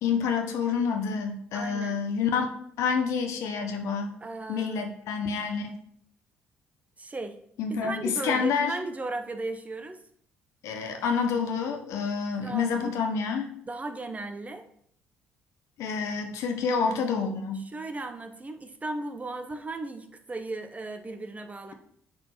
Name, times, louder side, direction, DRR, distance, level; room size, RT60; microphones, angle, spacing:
voice 1, 0.0-2.5 2.8-4.2 4.5-5.8 7.6-8.8 10.6-13.5 15.8-17.7, left 5 dB, 65° left, 4 dB, 1.2 m, -28 dB
voice 2, 1.5-2.0 4.2-4.8 7.0-7.4 7.7-10.0 12.4-13.0 13.7-14.6 17.7-21.7, right 2 dB, 25° right, 8 dB, 1.1 m, -36 dB
9.6 x 4.5 x 4.5 m, 0.66 s
hypercardioid pair, 50°, 6 cm